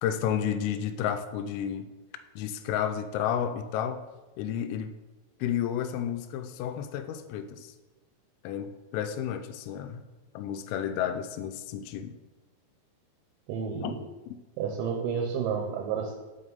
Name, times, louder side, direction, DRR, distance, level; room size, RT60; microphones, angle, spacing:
voice 1, 0.0-1.9 2.4-4.0 4.4-4.9 5.4-7.7 8.4-10.1 10.4-12.1 13.8-13.9 14.3-14.4, left 9 dB, 85° left, 9 dB, 3.1 m, -31 dB
voice 2, 13.5-14.0 14.6-16.1, right 6 dB, 80° right, 2 dB, 2.8 m, -30 dB
7.6 x 5.3 x 3.9 m, 1.2 s
omnidirectional pair, 5.8 m